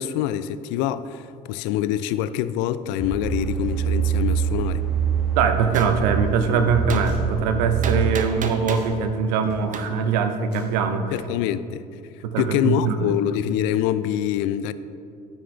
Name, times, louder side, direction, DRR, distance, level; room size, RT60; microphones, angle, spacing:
voice 1, 0.0-4.8 11.1-11.8 12.4-14.7, left 11 dB, 65° left, 0.4 m, -25 dB
sound 1, 3.0-8.1, right 7 dB, ahead, 1.8 m, -25 dB
voice 2, 5.3-11.1 12.2-13.1, right 6 dB, 75° right, 0.7 m, -22 dB
Gunshot gunfire, 5.7-5.9 6.9-7.1 7.8-8.9 9.7-9.9, right 5 dB, 40° right, 0.9 m, -31 dB
sound 2, 5.8-6.0 7.0-7.3 8.0-8.2 8.7-9.0 9.4-9.6 10.5-10.8, left 2 dB, 80° left, 1.9 m, -44 dB
13.5 x 6.2 x 3.3 m
hypercardioid pair, 60°, 21 cm